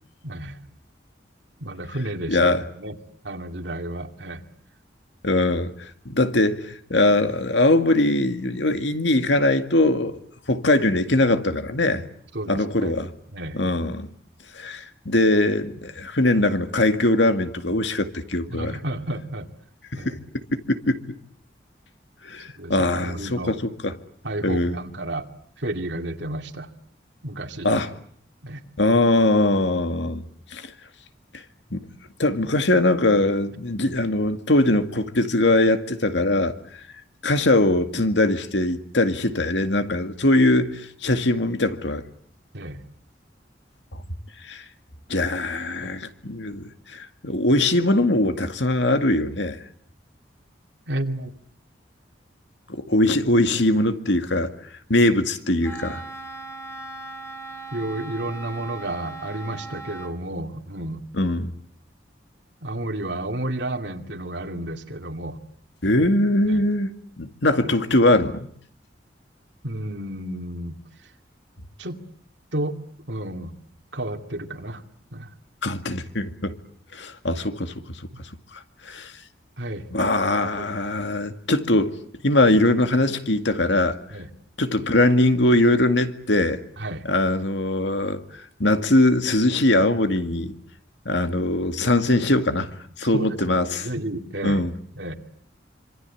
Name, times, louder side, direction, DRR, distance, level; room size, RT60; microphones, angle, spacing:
voice 1, 0.2-0.6 1.6-3.0 3.2-4.4 12.3-13.0 13.3-13.6 18.5-19.5 19.9-20.2 22.6-23.6 24.2-25.3 25.6-26.7 27.2-27.7 28.4-28.6 42.5-42.8 45.8-45.9 50.9-51.3 57.7-61.0 62.6-65.4 66.5-66.6 69.6-70.8 71.8-72.0 72.5-72.8 73.1-73.6 73.9-74.8 75.1-75.3 79.6-79.9 80.4-80.8 84.1-84.3 86.8-87.0 93.1-94.6 94.9-95.1, right 1 dB, 70° right, 2.4 m, -31 dB
voice 2, 2.3-2.6 5.2-10.2 10.5-12.0 12.5-13.1 13.5-14.1 14.5-18.8 19.9-20.2 20.7-21.0 22.2-23.9 24.4-24.8 27.6-27.9 28.8-30.2 30.5-30.7 31.7-31.8 32.2-36.5 37.2-42.0 44.4-44.6 45.1-49.6 52.7-54.5 54.9-56.0 61.1-61.5 65.8-68.5 75.6-76.6 76.9-77.7 78.9-79.1 79.9-82.0 82.2-84.0 84.6-86.6 87.1-88.2 88.6-90.5 91.1-92.7 93.0-93.9 94.4-94.7, left 1 dB, 75° left, 2.1 m, -21 dB
Wind instrument woodwind instrument, 55.6-60.2, right 3 dB, 15° left, 3.0 m, -38 dB
26.0 x 25.5 x 8.5 m
head